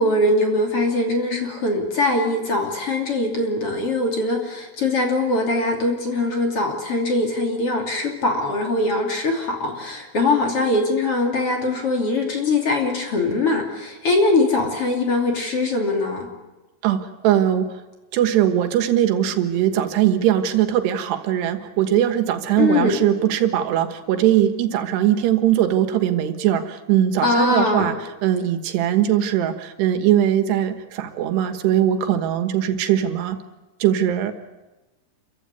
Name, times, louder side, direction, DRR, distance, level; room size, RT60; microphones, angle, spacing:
voice 1, 0.0-16.3 22.6-23.0 27.2-27.9, left 2 dB, 40° left, 2 dB, 3.4 m, -22 dB
voice 2, 16.8-17.7 18.1-28.0 28.2-33.4 33.8-34.3, right 11 dB, 90° right, 8 dB, 3.5 m, -20 dB
27.0 x 15.5 x 9.6 m, 1.1 s
omnidirectional pair, 4.7 m